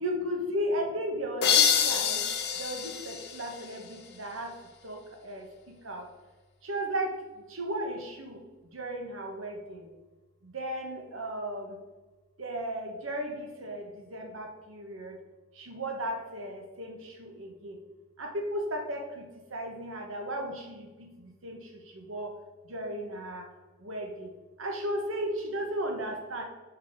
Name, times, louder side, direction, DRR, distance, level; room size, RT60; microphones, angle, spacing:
voice 1, 0.0-2.2 2.5-4.5 4.8-6.1 6.6-8.4 8.7-9.9 10.4-11.8 12.4-15.2 15.5-17.8 18.2-22.3 22.6-23.5 23.8-24.3 24.6-26.4, right 1 dB, 70° right, 3 dB, 1.3 m, -35 dB
sound 1, 1.4-4.1, left 8 dB, 55° left, 0.8 m, -27 dB
6.3 x 5.2 x 4.7 m, 1.2 s
head